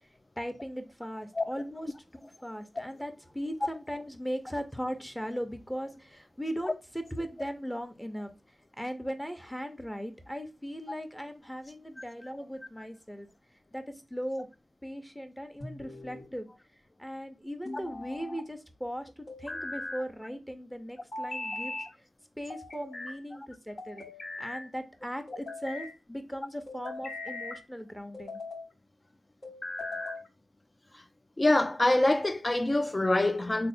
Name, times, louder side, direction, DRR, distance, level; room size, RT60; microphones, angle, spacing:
voice 1, 0.4-8.3 8.8-13.3 13.7-13.8 14.1-14.5 14.8-16.5 17.0-21.7 22.4-24.1 24.4-28.4, equal, 5° left, 0.7 m, -38 dB
sound 1, 15.6-16.3 17.6-18.4 19.3-20.1 21.1-21.9 22.5-23.2 23.8-24.6 25.3-25.9 26.7-27.6 28.1-28.7 29.4-30.3, left 2 dB, 65° left, 1.1 m, -39 dB
voice 2, 31.4-33.7, left 2 dB, 30° left, 0.3 m, -25 dB
3.3 x 2.1 x 4.1 m
cardioid pair, 45°, 0 cm